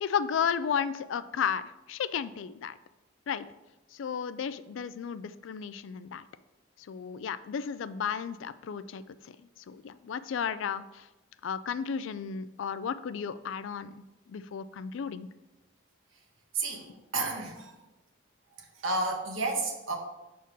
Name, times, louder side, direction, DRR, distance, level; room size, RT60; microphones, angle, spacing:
voice 1, 0.0-1.6 1.9-2.8 3.3-3.5 3.9-6.2 6.9-9.0 9.7-11.1 11.4-13.9 14.3-15.3, left 7 dB, 75° left, 15 dB, 0.3 m, -33 dB
voice 2, 16.5-17.8 18.7-20.0, right 3 dB, 85° right, 1 dB, 1.2 m, -31 dB
5.4 x 4.3 x 6.1 m, 1.0 s
head